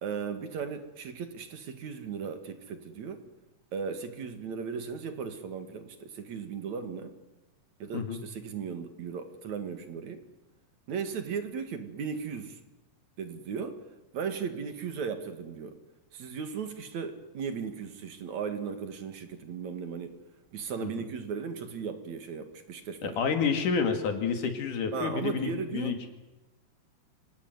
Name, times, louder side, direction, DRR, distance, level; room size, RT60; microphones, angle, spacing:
voice 1, 0.0-3.2 3.7-7.1 7.8-10.2 10.9-12.6 13.2-13.8 14.1-15.8 16.1-20.2 20.5-23.2 24.9-26.1, right 6 dB, 60° right, 8 dB, 3.0 m, -36 dB
voice 2, 23.0-26.1, left 6 dB, 70° left, 7 dB, 3.9 m, -29 dB
26.0 x 19.5 x 9.5 m, 1.0 s
omnidirectional pair, 3.8 m